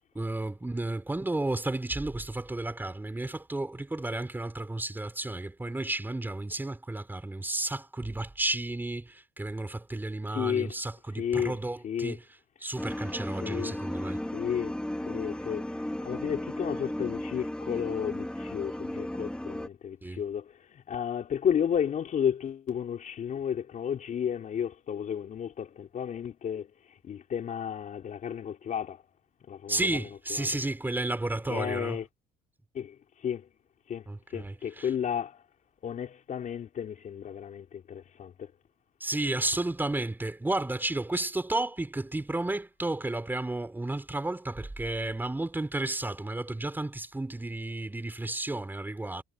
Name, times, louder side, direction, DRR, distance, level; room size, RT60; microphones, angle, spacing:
voice 1, 0.1-12.2 12.6-14.2 20.0-20.2 29.7-32.0 34.1-34.9 39.0-49.2, right 2 dB, 10° right, 5.5 m, -32 dB
voice 2, 10.3-10.7 11.2-11.6 11.8-12.2 13.4-13.8 14.3-14.7 15.1-15.6 16.0-26.7 27.0-29.0 29.5-30.0 30.3-30.5 31.5-32.1 32.7-33.0 33.2-33.5 33.9-34.0 34.3-35.4 35.8-38.5, left 8 dB, 50° left, 3.9 m, -32 dB
sound 1, 12.8-19.7, left 1 dB, 5° left, 3.5 m, -35 dB
cardioid pair, 110°, 17 cm